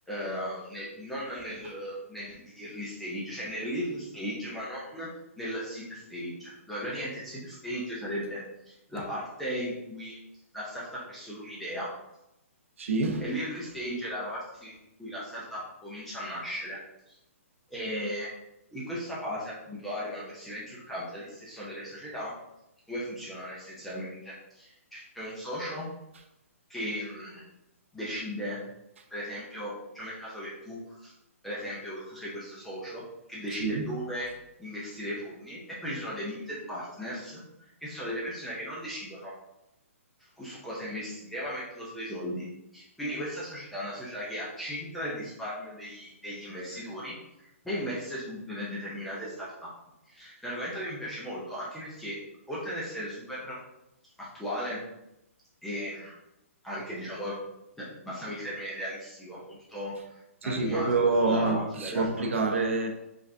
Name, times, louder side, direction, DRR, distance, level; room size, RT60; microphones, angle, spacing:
voice 1, 0.1-5.1 5.4-10.2 10.5-11.9 12.8-12.9 13.2-16.8 17.1-17.2 17.7-18.3 18.7-22.3 22.9-25.9 26.7-27.4 27.9-28.6 29.1-31.1 31.4-34.3 34.6-37.4 37.8-39.3 40.4-42.4 42.7-47.2 47.6-49.7 50.1-52.2 52.5-53.6 54.2-54.8 55.6-56.2 56.6-57.4 57.8-59.9 60.4-62.3, equal, ahead, -8 dB, 0.5 m, -36 dB
voice 2, 12.8-13.2 33.5-33.9 60.4-62.9, right 3 dB, 60° right, 4 dB, 0.7 m, -27 dB
5.0 x 3.4 x 2.6 m, 0.87 s
hypercardioid pair, 175°, 8 cm